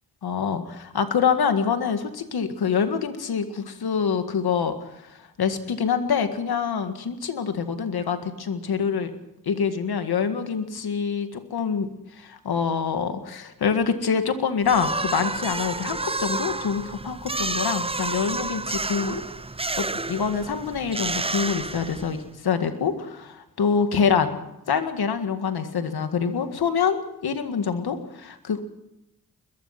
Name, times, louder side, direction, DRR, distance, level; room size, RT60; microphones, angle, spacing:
voice 1, 0.2-4.7 5.0-9.1 9.4-11.9 12.1-19.2 19.8-24.3 24.7-28.6, left 6 dB, 85° left, 8 dB, 1.9 m, -25 dB
sound 1, 14.6-22.3, right 3 dB, 15° right, 0.7 m, -30 dB
21.5 x 21.5 x 5.9 m, 0.88 s
cardioid pair, 40°, 37 cm